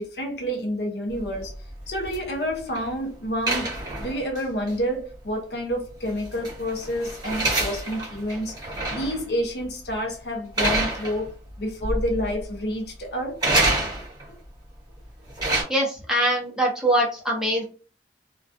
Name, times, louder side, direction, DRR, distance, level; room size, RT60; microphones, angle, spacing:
voice 1, 0.0-1.5 1.9-3.7 4.0-8.5 8.9-11.3 11.6-13.4, equal, 65° left, 0.7 m, -29 dB
sound 1, 1.1-2.9 3.5-4.4 4.7-4.8 6.0-9.2 9.6-9.9 10.6-11.5 11.8-12.4 13.4-14.3 15.1-15.6, right 2 dB, 25° right, 1.0 m, -27 dB
voice 2, 15.7-17.6, right 1 dB, 5° right, 0.7 m, -23 dB
2.3 x 2.2 x 2.5 m
head